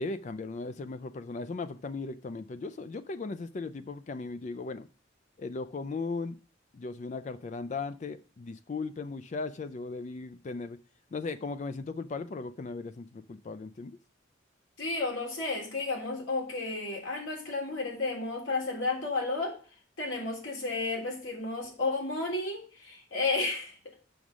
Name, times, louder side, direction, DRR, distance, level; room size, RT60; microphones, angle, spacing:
voice 1, 0.0-4.9 5.4-6.4 6.7-10.8 11.1-14.0, left 3 dB, 40° left, 0.3 m, -37 dB
voice 2, 14.8-19.5 20.0-23.8, left 3 dB, 80° left, 3.3 m, -32 dB
7.0 x 6.1 x 6.2 m
head